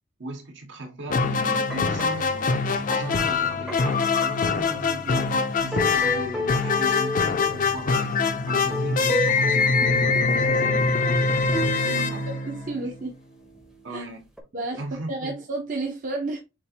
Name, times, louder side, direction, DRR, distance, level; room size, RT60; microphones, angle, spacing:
voice 1, 0.2-2.6 2.9-8.1 8.5-10.9 11.8-12.3 13.8-14.3 14.5-15.4, right 1 dB, 60° right, 1.1 m, -37 dB
sound 1, 1.1-13.0, left 4 dB, 40° left, 0.5 m, -23 dB
sound 2, 1.7-4.6 5.2-5.3 5.7-7.6 8.5-10.2 10.6-13.0 13.4-13.8 14.4-14.5, equal, 5° right, 0.7 m, -34 dB
voice 2, 12.5-13.2 13.9-14.0 14.5-14.8 15.1-16.4, right 2 dB, 40° right, 0.8 m, -31 dB
7.1 x 2.5 x 2.8 m
head